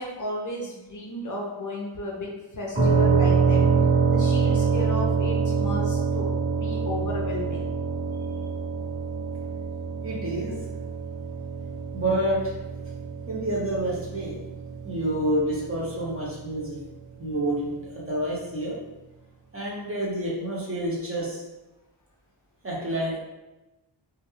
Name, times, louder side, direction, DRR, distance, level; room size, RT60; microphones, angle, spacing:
voice 1, 0.0-2.3 2.5-3.6 4.1-7.7, left 1 dB, 45° left, -3 dB, 0.4 m, -33 dB
sound 1, 2.7-16.4, right 5 dB, 65° right, 1.2 m, -26 dB
voice 2, 10.0-10.6 11.9-12.5 13.3-14.4 14.8-16.8 17.2-18.8 19.5-21.4 22.6-23.2, right 1 dB, 30° right, -5 dB, 0.6 m, -28 dB
2.3 x 2.2 x 2.9 m, 1.0 s
wide cardioid pair, 165°, 48 cm